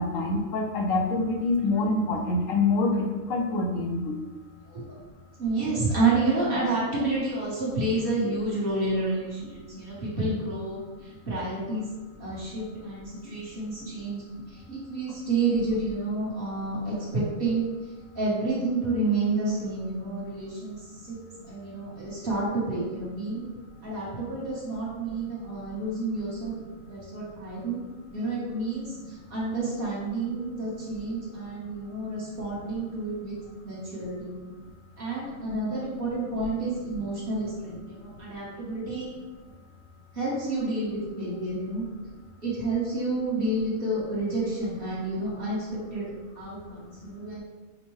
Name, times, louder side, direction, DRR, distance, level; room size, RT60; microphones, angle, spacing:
voice 1, 0.0-4.1, left 3 dB, 75° left, 0 dB, 1.0 m, -26 dB
voice 2, 5.4-11.9 12.2-17.6 18.1-20.8 21.0-21.2 21.5-23.5 23.8-26.5 26.8-27.8 28.1-33.3 33.6-34.3 35.0-39.1 40.1-41.8 42.4-46.1 46.4-47.4, right 2 dB, 45° right, -7 dB, 1.2 m, -29 dB
5.3 x 2.1 x 3.1 m, 1.2 s
omnidirectional pair, 1.4 m